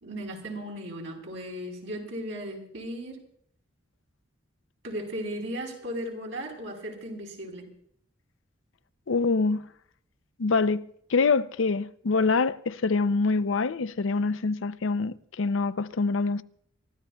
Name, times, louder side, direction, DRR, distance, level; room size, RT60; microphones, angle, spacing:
voice 1, 0.0-3.2 4.8-7.7, equal, 70° right, 4.1 m, -36 dB
voice 2, 9.1-9.7 10.4-16.4, left 4 dB, 75° left, 0.6 m, -25 dB
29.0 x 14.0 x 2.3 m
head